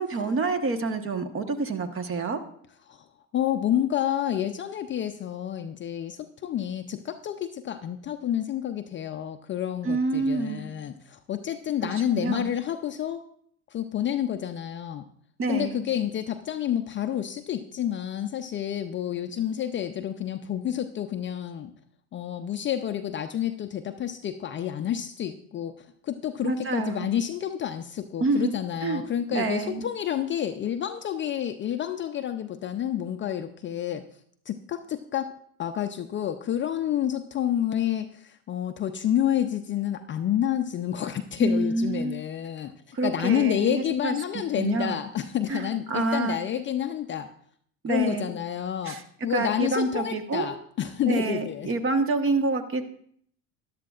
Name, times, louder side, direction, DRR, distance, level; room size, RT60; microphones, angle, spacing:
voice 1, 0.0-2.4 9.8-10.7 11.8-12.5 15.4-15.8 26.4-27.1 28.2-29.0 29.3-29.8 41.4-42.2 42.9-44.1 44.5-45.0 45.5-46.4 47.8-48.3 48.8-49.0 49.3-50.5 51.1-52.8, right 3 dB, 30° right, 8 dB, 1.2 m, -27 dB
voice 2, 3.3-13.2 13.7-15.1 15.5-21.7 22.1-34.0 34.5-35.3 35.6-47.3 47.9-51.7, left 10 dB, 30° left, 7 dB, 0.5 m, -29 dB
13.5 x 11.5 x 2.4 m, 0.64 s
hypercardioid pair, 90°, 40 cm